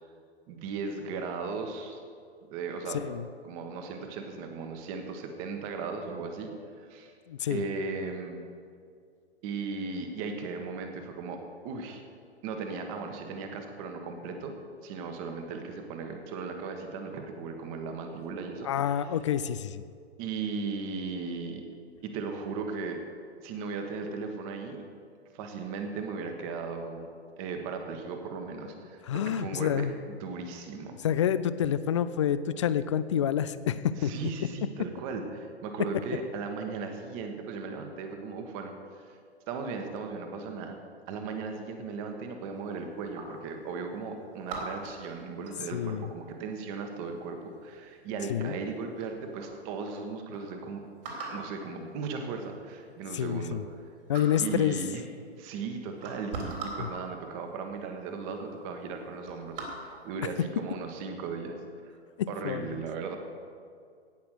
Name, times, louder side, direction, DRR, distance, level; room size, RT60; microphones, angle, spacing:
voice 1, 0.5-2.0 2.5-3.0 3.4-6.5 6.8-7.1 7.5-8.4 9.4-11.4 11.6-12.0 12.4-14.5 14.8-18.7 20.2-21.6 22.0-23.0 23.4-24.8 25.3-27.1 27.4-31.0 34.0-38.7 39.1-39.2 39.5-40.8 41.1-50.8 51.3-53.6 54.4-55.0 55.3-61.9 62.3-63.2, right 4 dB, 30° right, 5 dB, 1.5 m, -37 dB
voice 2, 2.9-3.2 7.3-7.6 18.6-19.8 29.0-29.9 31.0-34.1 45.7-46.1 48.3-48.5 53.1-53.6 54.1-54.8 56.8-56.9 62.2-62.7, left 9 dB, 30° left, 14 dB, 0.4 m, -28 dB
sound 1, 42.5-43.5 44.5-45.9 47.6-48.0 48.6-48.7 49.0-49.5 50.0-50.1 50.3-50.4 51.0-51.5 52.5-52.6 53.0-53.8 54.1-54.5 55.4-55.5 55.9-57.0 57.8-57.9 58.2-58.5 58.9-60.1 60.6-60.9, right 3 dB, 55° right, 3.5 m, -41 dB
17.0 x 5.9 x 6.6 m, 2.2 s
figure-of-eight pair, 125°, 33 cm